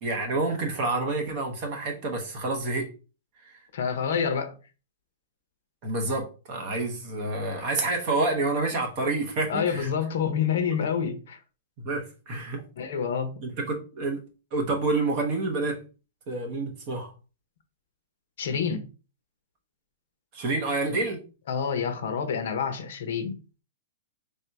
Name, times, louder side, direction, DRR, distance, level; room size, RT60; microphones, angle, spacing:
voice 1, 0.0-2.9 3.4-3.6 5.8-9.9 10.7-10.8 11.8-12.6 13.4-14.2 14.5-15.8 16.3-17.1 20.3-21.2, right 2 dB, 25° right, 0.9 m, -28 dB
voice 2, 3.7-4.6 9.5-11.4 12.8-13.3 18.4-18.8 21.5-23.4, left 7 dB, 55° left, 0.8 m, -27 dB
3.4 x 2.7 x 4.5 m
supercardioid pair, 180°, 0 cm